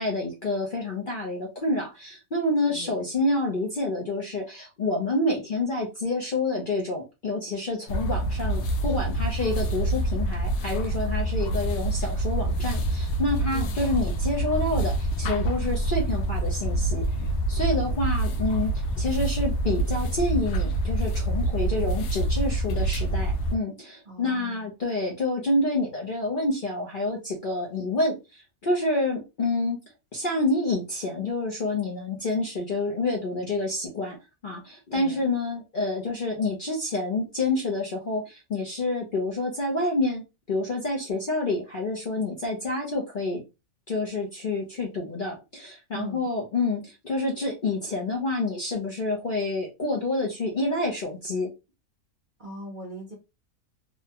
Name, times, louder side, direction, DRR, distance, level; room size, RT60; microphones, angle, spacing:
voice 1, 0.0-29.8 30.1-34.2 34.4-43.4 43.9-51.5, left 2 dB, 50° left, -1 dB, 0.6 m, -28 dB
sound 1, 7.9-23.6, right 1 dB, 85° left, 1.0 m, -26 dB
voice 2, 24.1-24.7 34.9-35.3 45.9-46.3 52.4-53.1, equal, 45° right, 0 dB, 0.7 m, -39 dB
2.9 x 2.2 x 2.8 m, 0.26 s
omnidirectional pair, 1.5 m